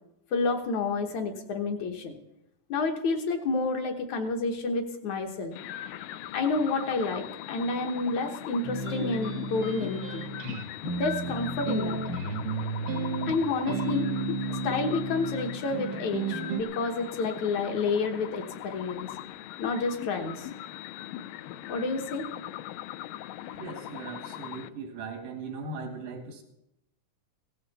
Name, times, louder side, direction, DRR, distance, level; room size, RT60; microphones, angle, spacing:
voice 1, 0.3-2.1 2.7-5.5 6.3-10.2 11.0-12.0 13.3-14.1 14.6-19.1 19.6-20.5 21.7-22.3, left 3 dB, 65° left, 3 dB, 2.5 m, -29 dB
sound 1, 5.5-24.7, left 12 dB, 80° left, 2.2 m, -40 dB
sound 2, 8.6-16.6, right 3 dB, 65° right, 1.1 m, -33 dB
voice 2, 23.6-26.4, right 4 dB, 90° right, 4 dB, 3.7 m, -39 dB
17.0 x 14.0 x 4.2 m, 0.84 s
omnidirectional pair, 3.8 m